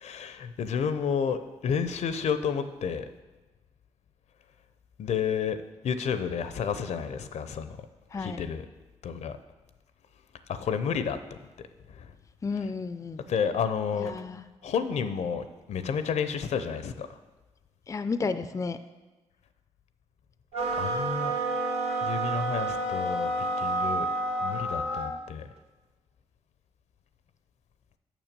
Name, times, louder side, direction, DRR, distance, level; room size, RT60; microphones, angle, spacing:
voice 1, 0.0-3.1 5.0-7.8 8.2-8.6 9.0-9.4 10.5-11.4 11.9-12.1 13.3-14.1 14.6-17.1 20.8-21.3 22.0-23.3 23.6-24.1 24.4-25.5, left 7 dB, 70° left, 11 dB, 0.6 m, -30 dB
voice 2, 8.1-8.4 12.4-13.2 14.0-14.5 17.9-18.8, left 4 dB, 25° left, 11 dB, 0.4 m, -32 dB
sound 1, 20.5-25.2, right 2 dB, 60° right, 1.5 m, -29 dB
6.5 x 6.1 x 6.6 m, 1.2 s
cardioid pair, 65°, 12 cm